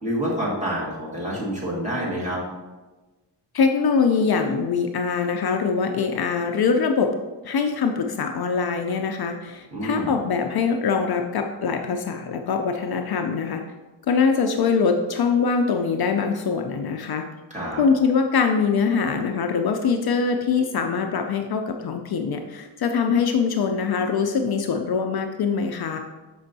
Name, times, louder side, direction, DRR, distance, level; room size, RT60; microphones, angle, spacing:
voice 1, 0.0-2.4 9.7-10.1 17.5-17.8, equal, 15° right, -6 dB, 1.7 m, -27 dB
voice 2, 3.5-7.1 7.4-13.6 14.1-17.2 17.8-26.0, left 5 dB, 55° left, 4 dB, 0.5 m, -23 dB
6.8 x 5.3 x 2.7 m, 1.2 s
wide cardioid pair, 130°, 44 cm